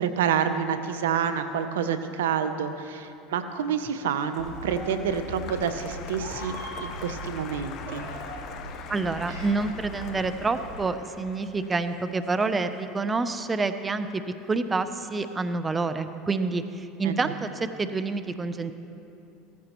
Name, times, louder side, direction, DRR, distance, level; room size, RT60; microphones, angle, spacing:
voice 1, 0.0-6.5 6.8-8.0 17.0-17.3, right 7 dB, 85° right, 10 dB, 0.7 m, -28 dB
Applause, 3.7-14.1 14.4-15.0, left 7 dB, 55° left, 0.9 m, -44 dB
Meow, 4.4-10.7, right 1 dB, 65° right, 3.3 m, -39 dB
voice 2, 8.9-14.2 14.5-18.7, right 3 dB, 20° right, 10 dB, 0.6 m, -28 dB
16.5 x 14.5 x 3.0 m, 2.8 s
hypercardioid pair, 95°, 0 cm